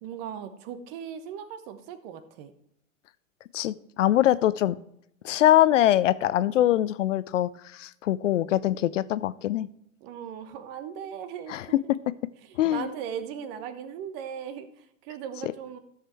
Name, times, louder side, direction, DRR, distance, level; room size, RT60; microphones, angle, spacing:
voice 1, 0.0-2.5 10.0-11.9 12.4-15.8, right 8 dB, 45° right, 11 dB, 1.2 m, -38 dB
voice 2, 3.5-4.8 5.2-9.7 11.5-11.6 12.6-12.9, left 13 dB, 65° left, 18 dB, 0.6 m, -23 dB
13.0 x 6.5 x 4.6 m, 0.77 s
figure-of-eight pair, 100°, 41 cm